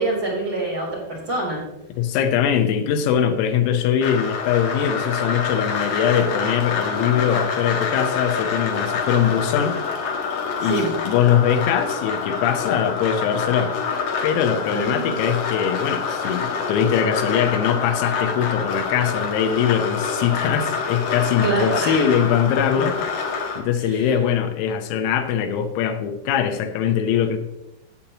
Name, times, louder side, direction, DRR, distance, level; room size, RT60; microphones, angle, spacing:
voice 1, 0.0-1.6 10.6-10.9 14.7-15.2 21.4-22.1 23.8-24.1, right 2 dB, 30° right, -7 dB, 2.7 m, -25 dB
voice 2, 2.0-9.8 10.6-13.7 14.2-23.0 23.6-27.4, left 8 dB, 90° left, 7 dB, 3.7 m, -22 dB
sound 1, 4.0-23.6, left 5 dB, 70° left, 2.1 m, -26 dB
15.5 x 8.4 x 2.9 m, 0.92 s
omnidirectional pair, 5.9 m